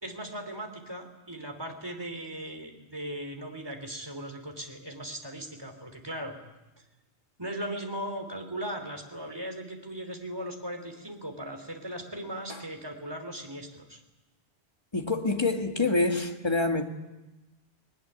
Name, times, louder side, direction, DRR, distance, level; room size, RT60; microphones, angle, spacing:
voice 1, 0.0-6.4 7.4-14.0, right 1 dB, 25° right, 5 dB, 3.2 m, -38 dB
voice 2, 14.9-16.8, left 3 dB, 25° left, 4 dB, 1.9 m, -26 dB
20.5 x 19.5 x 10.0 m, 1.1 s
omnidirectional pair, 1.1 m